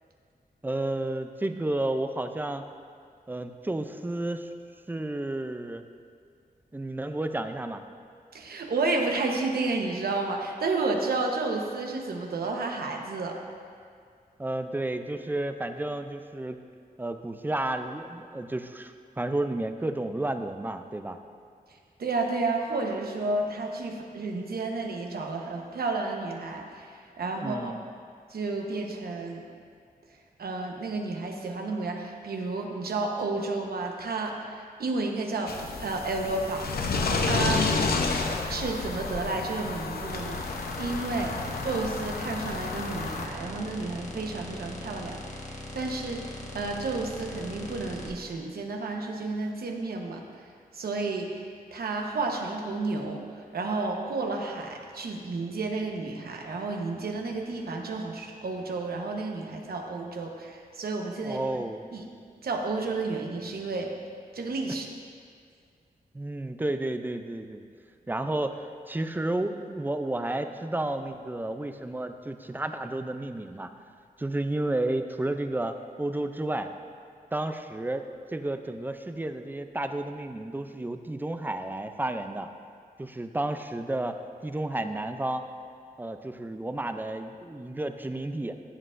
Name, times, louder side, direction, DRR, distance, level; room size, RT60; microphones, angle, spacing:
voice 1, 0.6-2.6 3.3-4.5 4.9-5.9 6.7-7.8 14.4-16.6 17.0-21.2 27.3-27.8 41.2-41.4 61.2-61.9 66.1-67.6 68.1-73.7 74.2-76.7 77.3-82.5 83.0-85.4 86.0-88.6, right 1 dB, 10° right, 8 dB, 0.4 m, -32 dB
voice 2, 8.3-13.4 21.7-27.7 28.3-29.5 30.4-37.7 38.5-41.4 41.6-50.2 50.7-61.4 61.9-62.0 62.4-63.9 64.3-64.9, right 3 dB, 90° right, 2 dB, 1.0 m, -31 dB
sound 1, 35.5-43.3, left 3 dB, 90° left, 0.7 m, -30 dB
sound 2, 40.1-48.1, left 1 dB, 50° left, 1.1 m, -41 dB
14.5 x 7.7 x 2.5 m, 2.2 s
wide cardioid pair, 160°, 16 cm